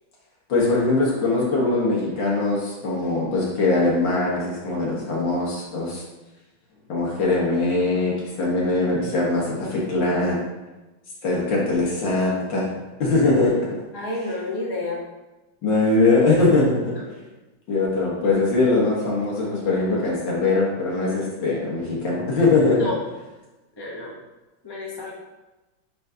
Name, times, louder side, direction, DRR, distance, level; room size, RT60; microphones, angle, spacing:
voice 1, 0.5-6.0 6.9-10.4 11.2-12.7 13.0-13.5 14.2-14.4 15.6-16.9 17.7-22.9, left 3 dB, 70° left, -4 dB, 2.2 m, -21 dB
voice 2, 13.9-15.0 22.8-23.0 23.8-24.1 24.6-25.1, left 2 dB, 20° left, -3 dB, 0.6 m, -30 dB
8.5 x 3.9 x 2.8 m, 1.1 s
omnidirectional pair, 2.2 m